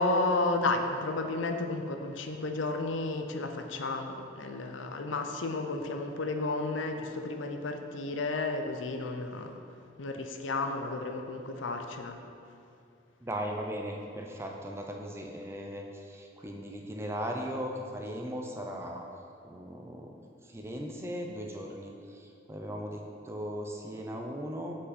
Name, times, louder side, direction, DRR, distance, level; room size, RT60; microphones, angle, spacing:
voice 1, 0.0-9.6 10.0-12.2, left 2 dB, 70° left, 5 dB, 0.6 m, -32 dB
voice 2, 13.2-19.1 19.4-20.1 20.4-24.8, equal, 15° right, 1 dB, 0.5 m, -38 dB
7.8 x 5.7 x 4.1 m, 2.5 s
head